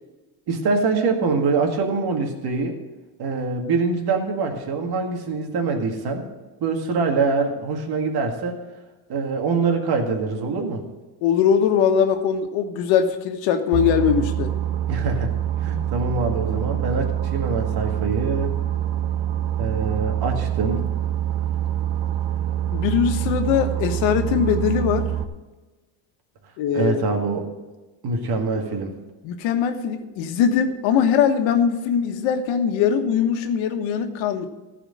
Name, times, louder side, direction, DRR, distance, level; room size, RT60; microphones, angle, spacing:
voice 1, 0.5-2.8 3.2-6.2 6.6-8.6 9.1-10.8 14.9-15.3 15.6-18.5 19.6-20.9 26.7-27.5 28.0-28.9, right 4 dB, 55° right, 3 dB, 2.0 m, -24 dB
voice 2, 11.2-14.5 22.7-25.1 26.6-27.1 29.2-34.5, left 7 dB, 85° left, 6 dB, 1.3 m, -21 dB
Boat Water vehicle, 13.7-25.2, right 11 dB, 75° right, 0.9 m, -25 dB
14.5 x 5.0 x 8.6 m, 1.2 s
cardioid pair, 125°, 45 cm